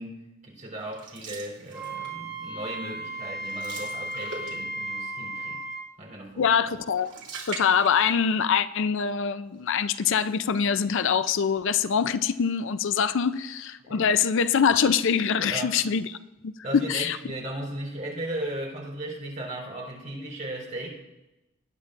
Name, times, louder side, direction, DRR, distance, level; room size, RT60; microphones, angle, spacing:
voice 1, 0.0-5.6 6.0-6.5 13.9-14.1 15.4-15.8 16.6-20.9, right 1 dB, 40° right, -3 dB, 4.1 m, -36 dB
sound 1, 0.9-2.3 2.7-2.9 3.2-4.9 6.7-8.5 8.8-8.9 9.7-10.6, right 4 dB, 60° right, 2.6 m, -42 dB
Wind instrument woodwind instrument, 1.7-5.8, right 2 dB, 10° right, 3.8 m, -35 dB
voice 2, 6.4-7.1 7.5-16.1 16.4-17.2, left 7 dB, 65° left, 13 dB, 0.5 m, -24 dB
20.0 x 9.8 x 2.5 m, 1.0 s
head